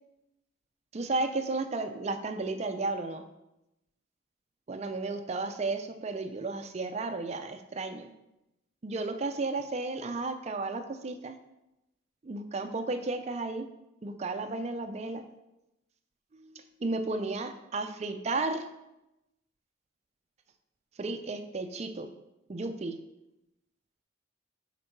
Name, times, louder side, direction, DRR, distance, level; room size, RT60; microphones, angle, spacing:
voice 1, 0.9-3.3 4.7-8.1 8.8-11.4 12.2-13.7 14.0-15.2 16.3-18.7 21.0-22.1 22.5-23.0, right 3 dB, 35° right, 8 dB, 0.4 m, -33 dB
6.6 x 4.4 x 4.5 m, 0.91 s
head